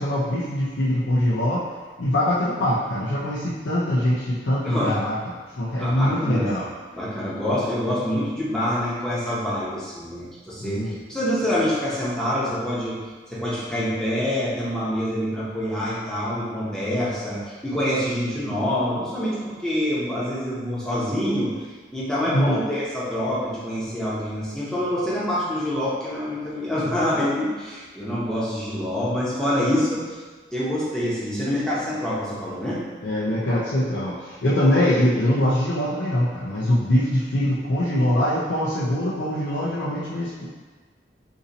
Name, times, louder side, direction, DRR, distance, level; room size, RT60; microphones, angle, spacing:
voice 1, 0.0-1.6 2.0-5.2 5.5-6.7 10.6-10.9 22.3-22.6 33.0-40.5, left 1 dB, 90° left, -8 dB, 0.6 m, -23 dB
voice 2, 4.6-5.0 5.8-6.5 6.9-13.0 13.3-21.5 21.9-30.2 30.5-32.8, equal, 5° left, -9 dB, 0.7 m, -26 dB
2.7 x 2.7 x 3.9 m, 1.4 s
head